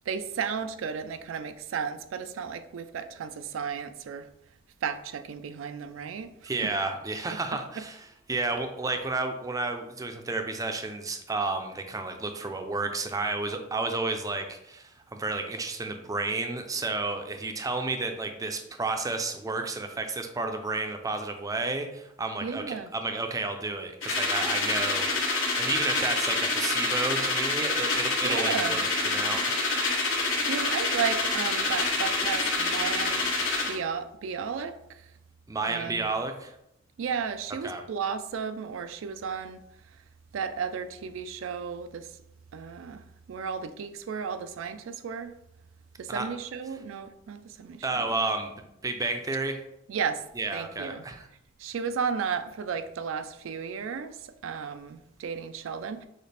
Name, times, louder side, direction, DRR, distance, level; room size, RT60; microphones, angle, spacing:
voice 1, 0.1-4.3 4.8-6.7 7.8-7.9 22.4-22.9 28.2-28.8 30.1-33.3 33.7-35.0 35.6-36.1 37.0-39.6 40.3-42.1 42.5-43.0 43.3-45.3 46.0-48.1 49.9-50.2 50.5-51.0 51.6-54.2 54.4-56.0, right 6 dB, 80° right, 0.4 m, -34 dB
voice 2, 6.4-29.6 35.5-36.5 37.6-37.8 46.1-46.3 47.8-49.6 50.4-51.3, right 3 dB, 20° right, 0.4 m, -31 dB
sound 1, 24.0-33.8, left 3 dB, 75° left, 1.3 m, -27 dB
6.5 x 2.4 x 3.3 m
head